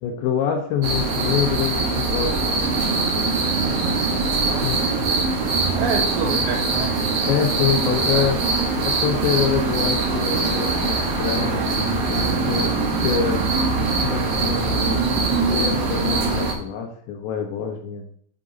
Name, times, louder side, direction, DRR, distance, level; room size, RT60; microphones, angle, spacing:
voice 1, 0.0-2.7 4.6-4.9 6.2-6.4 7.3-8.4 8.9-13.4 13.8-15.1 15.5-18.0, left 7 dB, 80° left, 2 dB, 3.1 m, -26 dB
sound 1, 0.8-16.5, right 3 dB, 60° right, 2.1 m, -22 dB
voice 2, 4.4-6.9 7.8-8.5, right 5 dB, 75° right, -1 dB, 3.8 m, -30 dB
8.2 x 3.8 x 5.2 m, 0.63 s
omnidirectional pair, 5.1 m